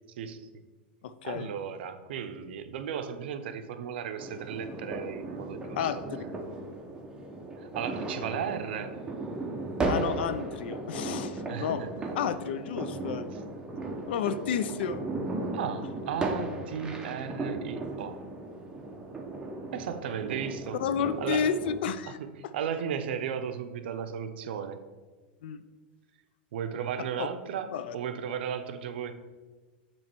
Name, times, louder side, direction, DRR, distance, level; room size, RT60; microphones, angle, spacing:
voice 1, 0.2-0.5 1.2-5.9 7.6-9.0 11.5-11.9 15.5-18.2 19.7-20.8 21.2-21.5 22.1-24.8 26.5-29.1, right 8 dB, 75° right, 9 dB, 0.5 m, -35 dB
voice 2, 1.0-1.5 5.8-6.0 9.9-11.8 12.2-13.3 14.1-15.1 20.8-21.6 21.8-22.2 25.4-25.6 27.2-27.3 27.7-28.0, left 7 dB, 75° left, 13 dB, 0.3 m, -31 dB
sound 1, 4.2-21.8, right 2 dB, 15° right, 0.7 m, -36 dB
7.2 x 3.1 x 4.4 m, 1.3 s
supercardioid pair, 125°, 6 cm